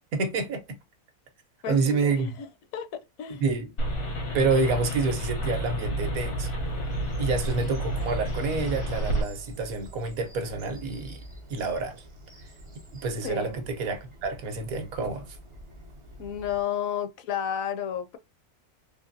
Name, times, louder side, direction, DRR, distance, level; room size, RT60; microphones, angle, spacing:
voice 1, 0.1-0.8 1.7-2.3 3.4-3.7 4.3-6.5 7.2-11.2 11.5-12.0 12.9-15.4, right 4 dB, 75° right, 1.3 m, -28 dB
voice 2, 1.6-2.5 2.7-3.4 4.3-4.4 13.2-13.6 16.2-18.2, left 9 dB, 70° left, 0.9 m, -32 dB
sound 1, 3.8-9.2, right 1 dB, 90° left, 1.6 m, -30 dB
Bird vocalization bird call bird song, 6.6-16.6, equal, 45° right, 0.4 m, -46 dB
3.8 x 2.9 x 2.6 m
omnidirectional pair, 1.6 m